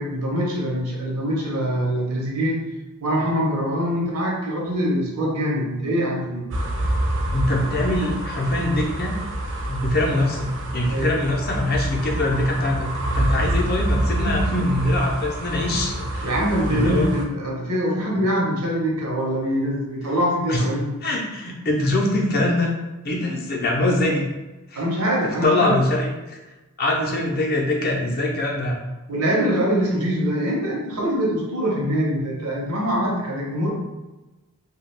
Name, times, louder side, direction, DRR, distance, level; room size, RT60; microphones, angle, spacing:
voice 1, 0.0-2.6 3.0-6.5 10.9-11.1 16.2-20.9 24.8-25.8 29.1-33.7, equal, 80° right, -2 dB, 0.8 m, -23 dB
sound 1, 6.5-17.2, right 1 dB, 55° right, 0.4 m, -27 dB
voice 2, 7.3-9.1 9.7-16.3 16.7-17.1 20.5-20.6 21.0-22.7 23.0-24.2 24.7-24.8 25.4-26.4 26.8-28.8, left 1 dB, 45° left, -2 dB, 0.6 m, -23 dB
2.3 x 2.3 x 3.3 m, 1.1 s
head